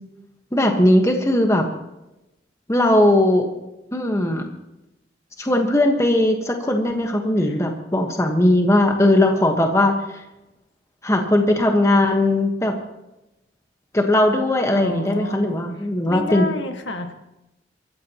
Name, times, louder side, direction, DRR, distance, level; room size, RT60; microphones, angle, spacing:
voice 1, 0.5-1.7 2.7-3.5 3.9-4.5 5.4-10.2 11.0-12.7 13.9-16.4, left 1 dB, 15° left, 3 dB, 1.3 m, -18 dB
voice 2, 14.7-15.6 16.1-17.1, left 2 dB, 80° left, 5 dB, 1.6 m, -30 dB
23.5 x 14.5 x 3.0 m, 0.94 s
head